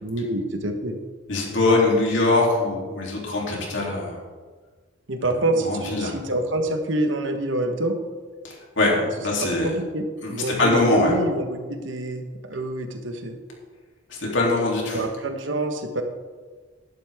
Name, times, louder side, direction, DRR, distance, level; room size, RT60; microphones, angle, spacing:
voice 1, 0.0-1.0 5.1-8.0 8.9-9.1 9.4-13.3 14.9-16.0, right 1 dB, 75° right, 5 dB, 1.4 m, -27 dB
voice 2, 1.3-4.2 5.6-6.2 8.4-8.9 9.2-9.7 10.2-11.1 14.2-15.0, left 2 dB, 70° left, -3 dB, 3.3 m, -22 dB
12.0 x 11.5 x 3.7 m, 1.4 s
head